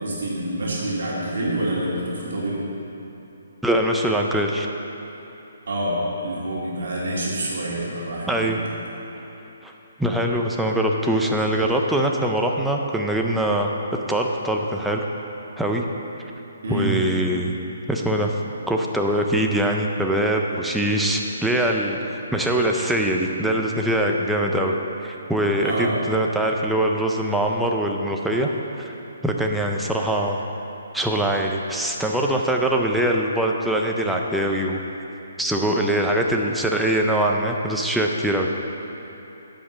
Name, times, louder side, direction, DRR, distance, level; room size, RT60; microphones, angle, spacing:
voice 1, 0.0-2.6 5.7-8.6 16.6-17.0 25.6-26.0, right 1 dB, 65° right, -5 dB, 2.3 m, -27 dB
voice 2, 3.6-4.7 8.3-8.6 9.6-9.7 10.0-13.7 14.1-15.1 15.6-15.8 16.7-17.5 17.9-18.4 18.7-24.7 25.0-28.5 28.8-28.9 29.2-30.4 30.9-34.8 35.4-38.5, right 1 dB, ahead, 0 dB, 0.4 m, -22 dB
11.0 x 5.2 x 7.1 m, 2.9 s
hypercardioid pair, 175°, 0 cm